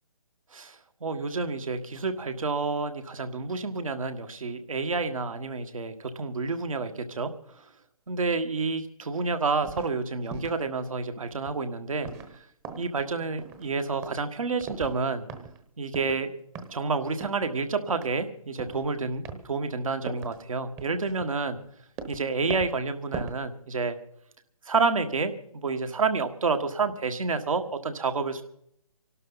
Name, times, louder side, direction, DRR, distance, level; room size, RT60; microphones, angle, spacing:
voice 1, 1.0-7.3 8.1-12.1 12.8-15.3 15.8-16.3 16.7-21.6 22.1-24.0 24.7-28.4, right 4 dB, 65° right, 8 dB, 1.8 m, -29 dB
sound 1, 9.6-9.9 10.3-10.6 11.3-11.6 12.0-12.4 12.6-13.1 13.4-13.8 14.0-14.3 14.6-15.0 15.3-15.6 15.9-16.2 16.6-16.9 17.2-17.6 17.9-18.1 18.6-18.9 19.2-19.5 20.1-20.4 20.8-21.7 22.0-22.3 22.5-22.8 23.1-23.5 23.8-23.9, right 5 dB, 15° right, 1.0 m, -40 dB
26.5 x 12.0 x 4.0 m, 0.72 s
figure-of-eight pair, 145°, 18 cm